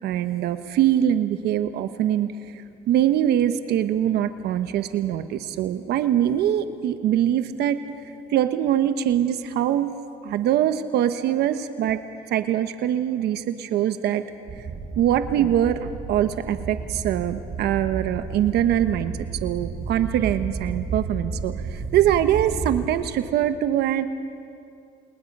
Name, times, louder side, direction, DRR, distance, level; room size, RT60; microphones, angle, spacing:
voice 1, 0.0-7.8 8.3-9.9 10.2-12.0 12.3-14.2 14.6-14.7 15.0-19.1 19.4-24.0, right 11 dB, 75° right, 9 dB, 1.1 m, -23 dB
sound 1, 14.5-22.9, right 4 dB, 45° right, 2.3 m, -32 dB
30.0 x 28.0 x 5.4 m, 2.4 s
cardioid pair, 110°, 17 cm